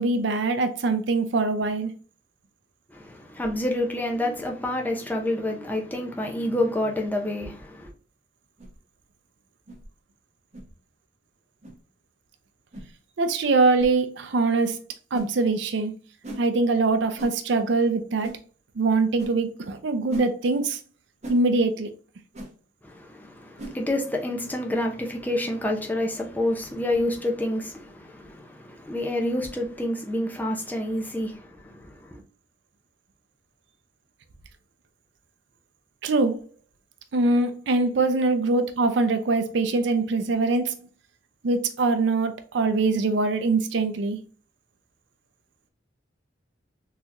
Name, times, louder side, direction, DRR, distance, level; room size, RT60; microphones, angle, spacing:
voice 1, 0.0-1.9 13.2-14.8 15.1-15.9 16.4-18.3 18.8-20.8 21.3-21.9 36.0-36.4 37.1-40.8 41.4-44.2, right 3 dB, 70° right, 0.5 m, -23 dB
voice 2, 2.9-7.9 22.8-32.2, left 1 dB, 10° left, 0.6 m, -28 dB
sound 1, 8.6-8.8 9.7-9.9 10.5-10.7 11.6-11.8 12.7-12.9 13.8-13.9 15.1-15.3 16.2-16.5 17.2-17.4 18.2-18.4 19.2-19.4 20.1-20.3 21.2-21.4 22.3-22.5 23.6-23.8, right 1 dB, 40° right, 0.9 m, -37 dB
4.0 x 2.9 x 2.5 m
head